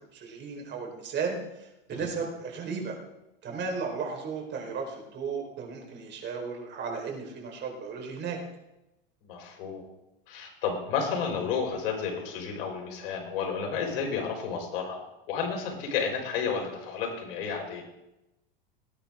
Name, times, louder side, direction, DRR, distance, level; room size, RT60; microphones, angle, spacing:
voice 1, 0.1-3.0 3.4-8.4 14.0-14.2, right 5 dB, 40° right, 1 dB, 4.6 m, -35 dB
voice 2, 9.2-9.8 10.3-17.8, left 6 dB, 70° left, 1 dB, 5.0 m, -32 dB
19.0 x 10.0 x 3.8 m, 0.93 s
hypercardioid pair, 100°, 29 cm